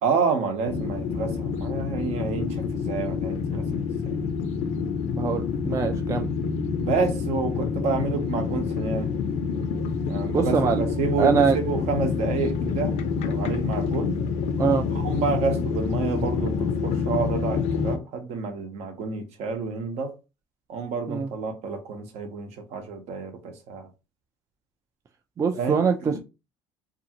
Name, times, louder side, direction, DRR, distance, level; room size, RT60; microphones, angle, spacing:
voice 1, 0.0-3.9 6.8-9.1 10.1-14.2 15.0-20.1 20.7-23.9 25.5-26.2, right 5 dB, 65° right, 0.8 m, -29 dB
sound 1, 0.7-18.0, left 5 dB, 70° left, 0.5 m, -27 dB
voice 2, 5.2-6.3 10.3-10.8 11.2-11.6 14.6-14.9 21.1-21.3 25.4-26.2, right 5 dB, 25° right, 0.3 m, -23 dB
2.6 x 2.4 x 2.7 m
supercardioid pair, 100°, 12 cm